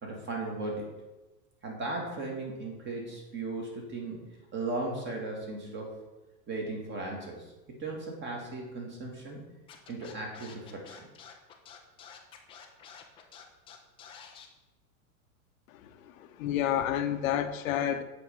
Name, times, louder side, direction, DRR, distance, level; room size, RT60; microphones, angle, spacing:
voice 1, 0.0-0.9 1.6-4.2 4.5-6.0 6.5-7.4 7.8-9.4 9.9-11.0, right 2 dB, 25° right, -1 dB, 2.0 m, -36 dB
Scratching (performance technique), 9.7-14.5, left 7 dB, 15° left, 0.3 m, -49 dB
voice 2, 16.2-18.0, left 10 dB, 65° left, 9 dB, 0.8 m, -29 dB
8.2 x 3.5 x 5.6 m, 1.1 s
hypercardioid pair, 125°, 45 cm